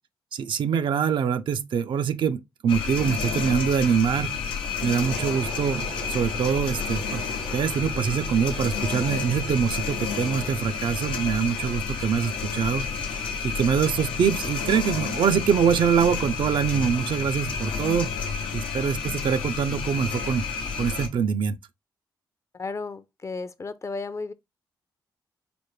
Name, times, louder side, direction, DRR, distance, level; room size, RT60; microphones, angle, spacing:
voice 1, 0.3-4.3 4.8-7.2 7.5-18.1 18.5-20.5 20.7-21.6, right 7 dB, 65° right, 0.4 m, -24 dB
sound 1, 2.7-21.1, left 5 dB, 90° left, 0.7 m, -30 dB
sound 2, 4.9-10.7, right 4 dB, 85° right, 0.8 m, -42 dB
voice 2, 22.5-24.3, left 3 dB, 35° left, 0.5 m, -34 dB
5.0 x 2.1 x 3.1 m
supercardioid pair, 50°, 9 cm